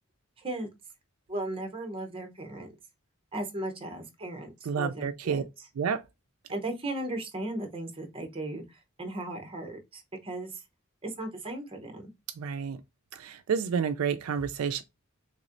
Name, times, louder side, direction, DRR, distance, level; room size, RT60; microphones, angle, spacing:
voice 1, 0.4-0.7 1.3-2.7 3.3-5.4 6.5-10.6 11.0-12.1, right 1 dB, 25° right, 0.8 m, -36 dB
voice 2, 4.7-5.4 5.8-6.0 12.4-12.8 13.1-14.8, right 6 dB, 80° right, 0.4 m, -30 dB
3.5 x 3.1 x 2.5 m
head